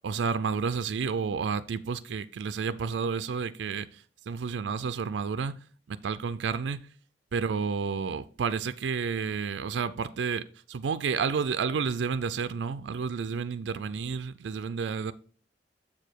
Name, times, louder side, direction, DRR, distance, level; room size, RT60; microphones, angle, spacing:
voice 1, 0.0-5.6 5.9-6.9 7.3-15.1, right 5 dB, 80° right, 0.4 m, -31 dB
7.3 x 4.9 x 4.5 m
head